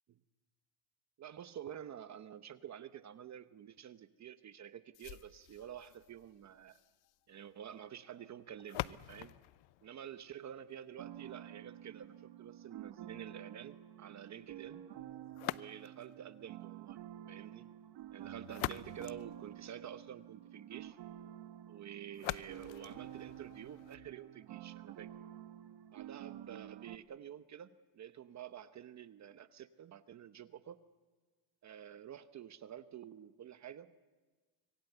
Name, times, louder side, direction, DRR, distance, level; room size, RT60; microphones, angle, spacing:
voice 1, 1.2-6.8 7.3-9.4 9.8-14.9 15.5-17.0 17.3-17.7 18.1-21.0 21.7-25.1 25.9-30.8 31.6-33.9, right 9 dB, 35° right, 12 dB, 0.9 m, -49 dB
sound 1, 4.9-10.9 15.3-16.2 18.2-20.1 22.1-24.1, left 19 dB, 70° left, 0.7 m, -46 dB
sound 2, 11.0-27.0, right 12 dB, 60° right, 1.2 m, -50 dB
25.5 x 22.5 x 8.0 m, 1.3 s
cardioid pair, 130°, 47 cm